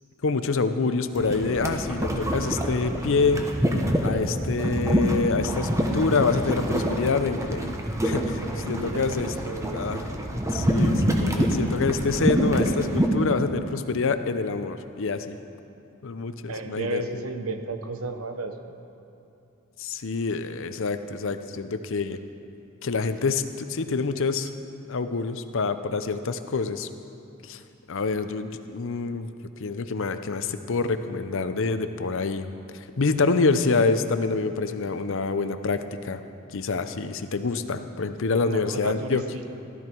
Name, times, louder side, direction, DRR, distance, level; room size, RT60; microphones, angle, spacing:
voice 1, 0.2-3.5 4.0-7.7 8.0-9.3 9.7-10.0 10.5-15.4 16.0-17.0 19.8-22.2 22.8-24.5 24.9-26.9 27.4-27.6 27.9-29.3 29.6-36.2 36.5-39.2, left 4 dB, 65° left, 10 dB, 0.7 m, -26 dB
sound 1, 1.2-13.1, equal, 15° right, 1.1 m, -26 dB
voice 2, 8.3-9.8 16.5-18.8 38.4-39.4, right 2 dB, 90° right, 7 dB, 1.0 m, -33 dB
15.5 x 12.5 x 4.6 m, 2.8 s
head